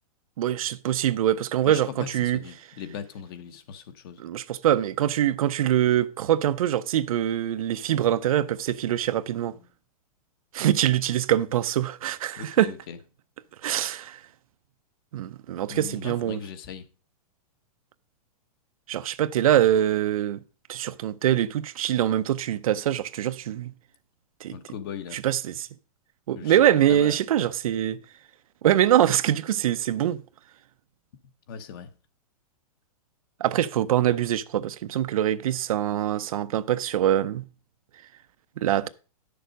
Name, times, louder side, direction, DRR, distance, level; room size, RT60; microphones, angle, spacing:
voice 1, 0.4-2.4 4.2-9.5 10.5-12.7 13.6-14.2 15.1-16.4 18.9-20.4 20.7-23.7 24.4-24.6 25.1-25.7 26.3-28.0 28.6-30.2 33.4-37.4 38.6-38.9, right 11 dB, 65° right, 0.6 m, -24 dB
voice 2, 1.6-4.2 12.4-13.0 15.7-16.9 24.5-25.2 26.3-26.6 26.9-27.2 31.5-31.9 38.8-38.9, left 8 dB, 35° left, 1.0 m, -39 dB
10.0 x 6.7 x 5.2 m
supercardioid pair, 175°, 20 cm